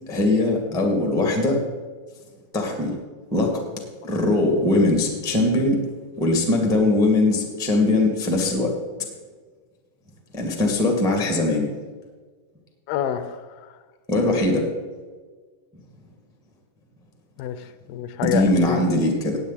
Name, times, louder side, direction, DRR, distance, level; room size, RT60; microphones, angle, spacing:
voice 1, 0.1-1.6 2.5-2.9 3.3-3.6 4.0-5.8 6.2-8.7 10.3-11.7 14.1-14.6 18.2-19.4, left 2 dB, ahead, 2 dB, 0.9 m, -21 dB
voice 2, 12.9-13.7 17.4-18.9, left 10 dB, 80° left, 11 dB, 2.4 m, -28 dB
17.5 x 8.9 x 4.2 m, 1.5 s
omnidirectional pair, 4.3 m